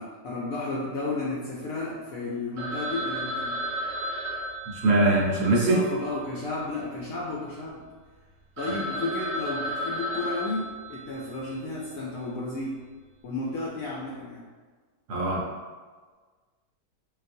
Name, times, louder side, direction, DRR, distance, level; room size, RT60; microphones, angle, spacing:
voice 1, 0.0-3.6 5.6-7.8 8.6-12.8 13.2-14.5, left 2 dB, 70° left, -5 dB, 0.8 m, -33 dB
Telephone, 2.6-6.9 7.2-7.3 7.8-7.9 8.3-8.4 8.6-11.5, equal, 50° right, 0.9 m, -34 dB
voice 2, 4.7-5.8 15.1-15.4, right 2 dB, 70° right, -3 dB, 1.3 m, -22 dB
3.9 x 2.4 x 2.6 m, 1.4 s
omnidirectional pair, 1.8 m